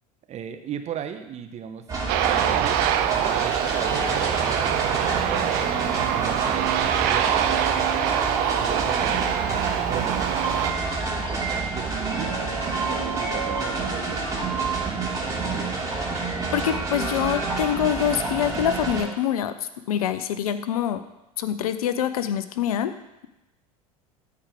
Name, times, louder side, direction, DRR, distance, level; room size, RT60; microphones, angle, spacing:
voice 1, 0.3-2.8 3.1-7.5 8.5-10.4 11.0-12.5 12.9-15.8, right 8 dB, 35° right, 8 dB, 1.0 m, -37 dB
sound 1, 1.9-19.0, right 3 dB, 20° right, 3.0 m, -28 dB
Aircraft, 2.1-10.7, right 11 dB, 55° right, 0.7 m, -25 dB
voice 2, 16.5-19.6 19.9-21.0 21.4-22.9, left 10 dB, 70° left, 12 dB, 0.7 m, -25 dB
13.5 x 4.9 x 5.2 m, 0.94 s
figure-of-eight pair, 75°, 19 cm